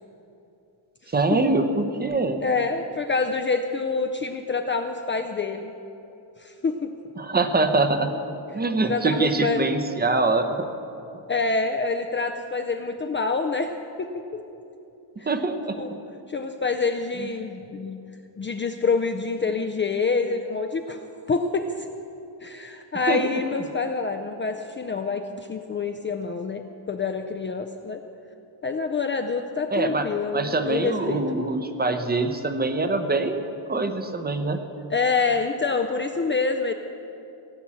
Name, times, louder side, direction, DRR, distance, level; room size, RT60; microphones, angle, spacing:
voice 1, 1.1-2.4 7.2-8.1 8.5-10.7 15.3-15.8 17.2-17.3 23.1-23.2 29.7-30.1 30.3-33.4 33.7-34.6, right 3 dB, 20° right, 8 dB, 0.7 m, -24 dB
voice 2, 2.4-5.7 6.4-6.9 8.9-9.6 11.3-13.7 14.0-14.4 15.2-15.3 15.8-15.9 16.3-18.0 18.4-21.0 21.3-21.9 22.4-28.0 28.6-31.2 34.9-36.7, left 4 dB, 25° left, 5 dB, 0.4 m, -26 dB
17.0 x 6.0 x 8.5 m, 2.8 s
cardioid pair, 160°, 45 cm